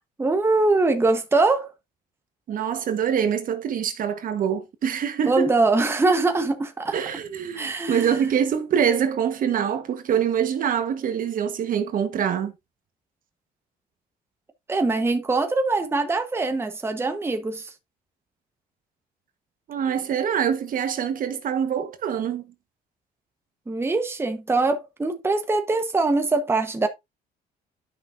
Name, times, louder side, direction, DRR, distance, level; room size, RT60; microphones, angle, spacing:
voice 1, 0.2-1.7 5.2-6.9 7.5-8.2 14.7-17.7 23.7-26.9, right 3 dB, 15° right, 1.1 m, -22 dB
voice 2, 2.5-5.5 6.9-12.5 19.7-22.4, right 8 dB, 55° right, 1.3 m, -25 dB
10.5 x 5.9 x 2.6 m
cardioid pair, 110°, 17 cm